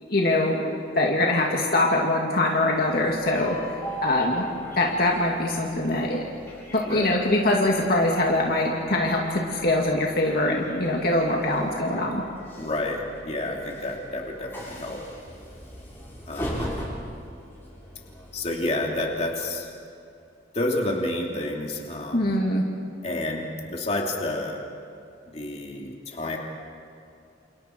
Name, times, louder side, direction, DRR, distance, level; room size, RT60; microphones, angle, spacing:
voice 1, 0.1-3.6 4.0-4.5 4.8-6.2 6.7-12.2 22.1-22.6, left 1 dB, 50° left, -1 dB, 2.4 m, -23 dB
Train, 2.4-19.6, equal, 15° left, 6.5 m, -40 dB
voice 2, 6.8-7.2 12.6-15.0 16.3-16.8 18.3-19.7 20.5-22.3 23.0-24.6 25.3-26.4, left 1 dB, 35° left, 0 dB, 2.9 m, -30 dB
29.0 x 28.5 x 4.6 m, 2.5 s
head